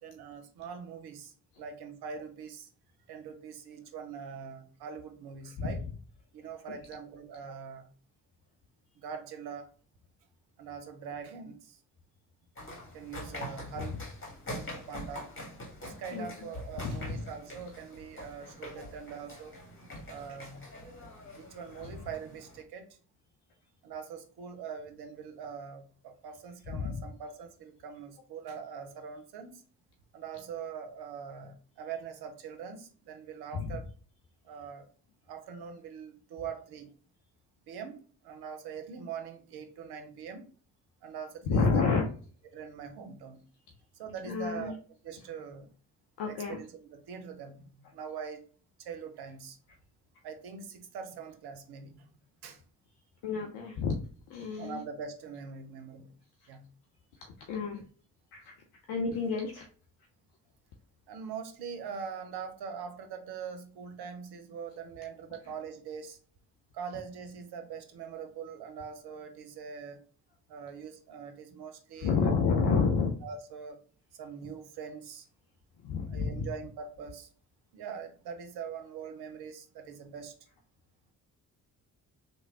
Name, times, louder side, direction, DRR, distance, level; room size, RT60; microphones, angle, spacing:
voice 1, 0.0-2.7 3.1-5.8 6.3-7.9 9.0-9.7 10.6-11.8 12.9-13.9 14.5-15.3 15.8-19.6 20.1-20.7 21.4-22.9 23.8-29.6 30.1-33.9 34.4-34.9 35.3-36.9 37.7-40.5 41.0-41.8 42.5-43.4 43.9-44.8 45.0-45.7 46.3-48.4 48.8-49.6 50.2-52.1 52.4-52.6 54.6-56.1 56.5-56.7 61.1-66.2 66.7-70.0 70.5-72.3 73.2-73.8 74.1-75.3 76.1-77.3 77.7-80.3, right 6 dB, 55° right, 7 dB, 0.8 m, -43 dB
sound 1, 12.6-22.6, left 1 dB, 25° left, 1.4 m, -45 dB
voice 2, 16.8-17.2 21.8-21.9 26.7-27.0 33.5-33.8 41.5-42.1 44.2-44.7 46.2-46.6 53.2-54.0 54.3-54.8 57.4-57.8 58.3-58.6 58.9-59.7 72.0-73.2 75.8-76.5, left 5 dB, 55° left, 2 dB, 0.6 m, -29 dB
3.2 x 2.2 x 3.6 m, 0.43 s
figure-of-eight pair, 40°, 45 cm